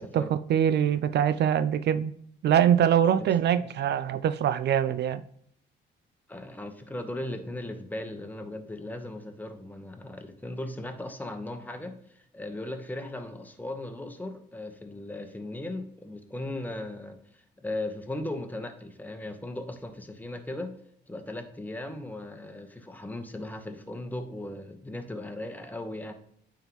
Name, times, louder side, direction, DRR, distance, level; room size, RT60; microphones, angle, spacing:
voice 1, 0.5-2.1 2.4-5.2, right 9 dB, 60° right, 0.4 m, -23 dB
voice 2, 6.3-20.8 21.1-26.1, left 1 dB, 10° left, 1.0 m, -37 dB
8.9 x 3.6 x 3.0 m
cardioid pair, 90°, 20 cm